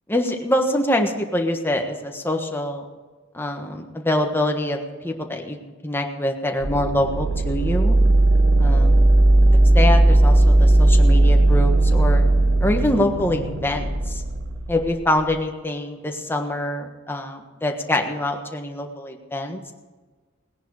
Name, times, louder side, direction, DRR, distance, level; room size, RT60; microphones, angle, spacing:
voice 1, 0.1-2.9 3.3-8.0 8.6-9.0 9.4-12.2 12.6-14.2 14.7-19.7, left 1 dB, 10° left, 3 dB, 1.4 m, -25 dB
sound 1, 6.6-15.3, right 1 dB, 55° right, 1.5 m, -17 dB
18.0 x 10.5 x 4.9 m, 1.4 s
head